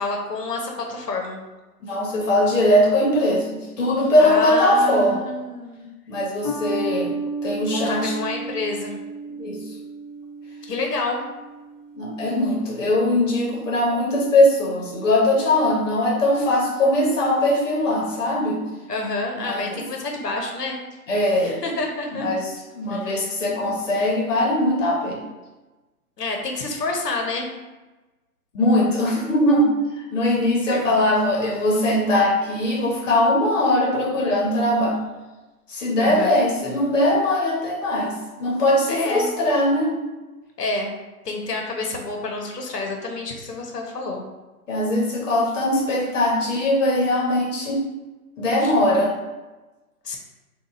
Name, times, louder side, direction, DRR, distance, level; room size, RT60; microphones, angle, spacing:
voice 1, 0.0-1.4 4.2-5.9 7.7-9.0 10.7-11.2 18.9-20.8 21.4-22.3 22.9-23.3 26.2-27.5 30.7-31.0 36.0-36.4 38.9-39.3 40.6-40.9 41.2-44.2 48.6-48.7 50.0-50.2, left 3 dB, 85° left, 1 dB, 1.1 m, -28 dB
voice 2, 1.8-5.2 6.1-7.1 7.4-8.1 9.4-9.6 11.9-18.6 19.4-19.8 21.1-21.6 22.1-25.2 28.5-35.0 35.7-39.9 44.7-47.8 48.4-49.1, left 1 dB, 50° left, -2 dB, 1.1 m, -20 dB
sound 1, 6.4-13.2, right 3 dB, 15° left, 0.6 m, -33 dB
7.0 x 2.6 x 2.5 m, 1.1 s
hypercardioid pair, 140°, 47 cm